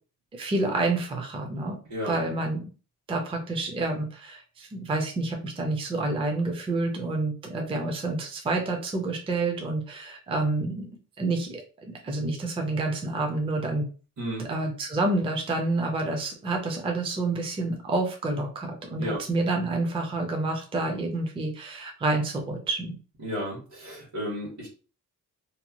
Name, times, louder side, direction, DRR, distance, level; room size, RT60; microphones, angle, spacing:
voice 1, 0.3-1.8 2.1-2.6 3.1-10.9 11.2-13.9 14.4-23.0, right 2 dB, 15° right, 2 dB, 0.4 m, -28 dB
voice 2, 14.2-14.5 19.0-19.2 23.2-24.7, equal, 55° right, -5 dB, 1.4 m, -33 dB
2.7 x 2.2 x 2.8 m, 0.36 s
wide cardioid pair, 180°, 33 cm